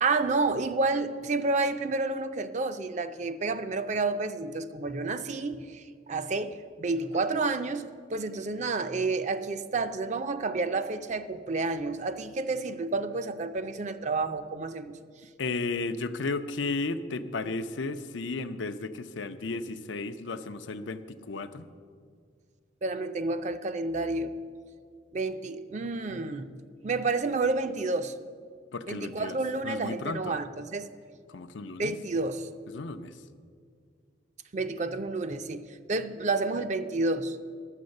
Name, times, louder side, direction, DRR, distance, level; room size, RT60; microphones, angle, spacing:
voice 1, 0.0-15.0 22.8-24.3 25.1-26.5 26.8-28.1 28.9-30.9 31.8-32.5 34.5-37.4, right 3 dB, 40° right, 11 dB, 0.5 m, -30 dB
voice 2, 15.4-21.7 28.7-29.4 29.6-30.4 31.3-31.9 32.7-33.1, left 3 dB, 85° left, 10 dB, 0.6 m, -34 dB
11.0 x 7.8 x 6.4 m, 2.1 s
head